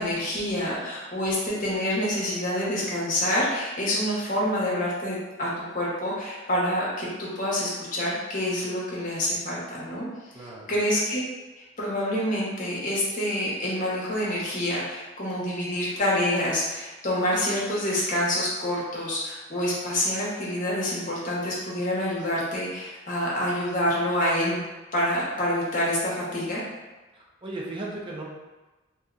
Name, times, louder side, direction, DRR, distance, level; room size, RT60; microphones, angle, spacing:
voice 1, 0.0-10.1 10.4-11.2 11.8-24.6 24.9-26.6, left 1 dB, 40° left, -6 dB, 0.8 m, -27 dB
voice 2, 10.3-10.7 27.1-28.2, right 2 dB, 25° right, -3 dB, 0.5 m, -36 dB
2.7 x 2.2 x 3.6 m, 1.2 s
head